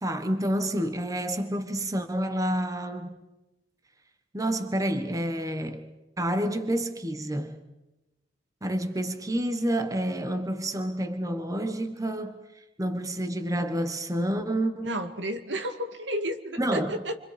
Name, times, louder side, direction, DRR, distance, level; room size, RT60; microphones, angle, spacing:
voice 1, 0.0-3.2 4.3-5.9 6.2-7.6 8.6-15.0 16.6-17.0, right 1 dB, 20° right, 1.2 m, -29 dB
voice 2, 14.8-17.2, equal, 80° right, 2.2 m, -32 dB
29.5 x 25.5 x 5.0 m
head